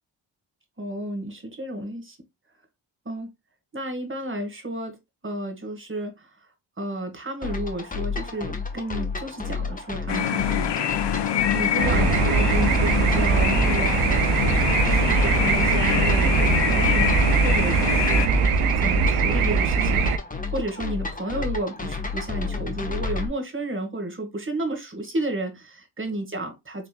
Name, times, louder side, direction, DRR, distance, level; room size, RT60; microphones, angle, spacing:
voice 1, 0.8-2.2 3.1-3.3 3.7-5.0 5.2-6.3 6.8-11.0 11.5-14.5 14.9-18.3 18.8-20.1 20.5-26.9, right 1 dB, 25° right, 1.8 m, -32 dB
sound 1, 7.4-23.3, left 4 dB, 15° left, 1.1 m, -31 dB
sound 2, 10.1-18.3, left 9 dB, 55° left, 0.8 m, -25 dB
sound 3, 11.8-20.2, right 5 dB, 90° right, 0.7 m, -21 dB
3.9 x 3.5 x 2.3 m
supercardioid pair, 50°, 49 cm